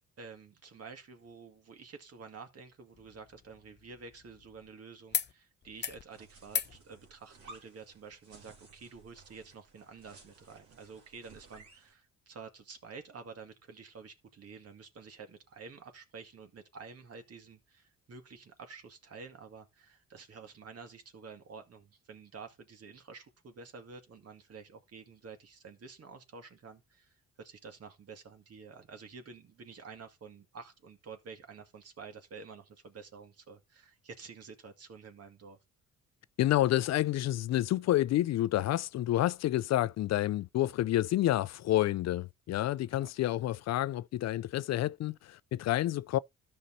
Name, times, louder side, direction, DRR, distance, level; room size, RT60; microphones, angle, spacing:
voice 1, 0.2-35.6 42.9-43.1, right 5 dB, 55° right, 2.0 m, -50 dB
sound 1, 2.9-4.7 5.1-5.3 5.6-6.0 6.5-6.8 8.1-8.2, left 7 dB, 35° left, 0.7 m, -38 dB
sound 2, 6.1-11.9, right 3 dB, 70° right, 3.3 m, -57 dB
voice 2, 36.4-46.2, left 14 dB, 60° left, 0.4 m, -29 dB
13.0 x 5.5 x 2.7 m
cardioid pair, 90°, 30 cm